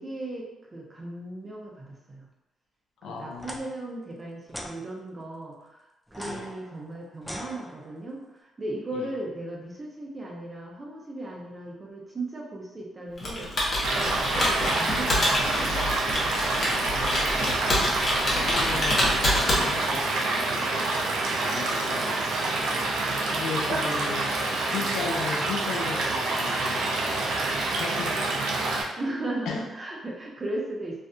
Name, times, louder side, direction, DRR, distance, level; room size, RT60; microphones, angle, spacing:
voice 1, 0.0-2.3 3.0-13.5 13.9-15.8 29.0-31.1, right 2 dB, 30° right, -2 dB, 0.7 m, -37 dB
voice 2, 3.0-3.6 6.2-6.5 8.9-9.1 16.6-18.0 18.4-20.9 21.4-22.3 23.3-24.3 24.7-28.5 29.5-29.6, left 5 dB, 80° left, 1 dB, 0.4 m, -37 dB
sound 1, 3.3-3.6 4.5-4.7 6.1-8.1, equal, 5° left, 0.4 m, -40 dB
Computer keyboard, 13.2-20.1, left 1 dB, 45° left, 0.9 m, -27 dB
Stream / Liquid, 13.8-28.8, right 2 dB, 80° right, 0.4 m, -27 dB
2.5 x 2.4 x 2.2 m, 0.94 s
supercardioid pair, 60°, 0 cm